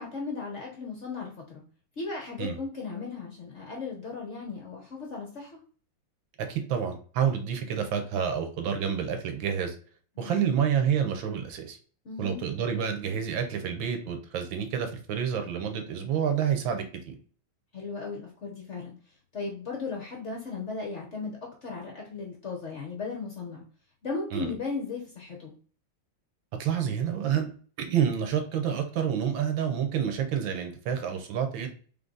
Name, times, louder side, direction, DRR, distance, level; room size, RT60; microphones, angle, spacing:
voice 1, 0.0-1.6 2.0-5.6 10.2-10.6 12.0-12.4 17.7-18.9 19.3-23.6 24.0-25.5, left 4 dB, 50° left, 0 dB, 0.9 m, -36 dB
voice 2, 6.4-9.7 10.2-11.8 12.2-17.2 24.3-24.5 26.6-27.5 27.8-31.7, right 8 dB, 80° right, 6 dB, 1.6 m, -28 dB
3.9 x 3.2 x 3.8 m, 0.42 s
omnidirectional pair, 2.2 m